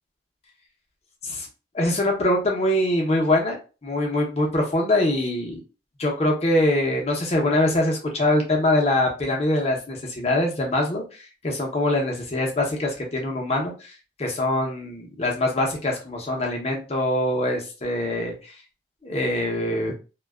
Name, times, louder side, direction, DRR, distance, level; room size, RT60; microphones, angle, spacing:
voice 1, 1.7-3.6 3.8-5.6 6.0-18.5 19.0-19.9, left 1 dB, 35° left, 0 dB, 0.6 m, -23 dB
2.5 x 2.2 x 2.3 m, 0.32 s
head